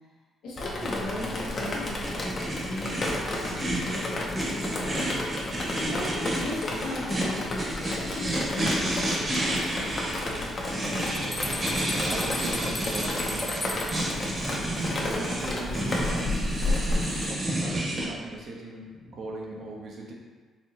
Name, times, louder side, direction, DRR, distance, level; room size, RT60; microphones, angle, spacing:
voice 1, 0.4-3.0 3.5-5.2 5.8-9.5 13.5-13.7 19.0-19.2, left 1 dB, 90° left, -7 dB, 1.0 m, -37 dB
Drip, 0.6-17.3, left 2 dB, 45° left, 0.7 m, -32 dB
sound 1, 0.8-18.1, right 1 dB, 35° right, 1.1 m, -31 dB
voice 2, 10.5-14.3 14.7-16.3 16.6-16.9 17.3-20.1, right 2 dB, 60° right, -2 dB, 0.7 m, -40 dB
sound 2, 11.0-14.1, left 1 dB, 15° left, 0.4 m, -36 dB
4.2 x 2.8 x 2.8 m, 1.4 s
cardioid pair, 90°, 0 cm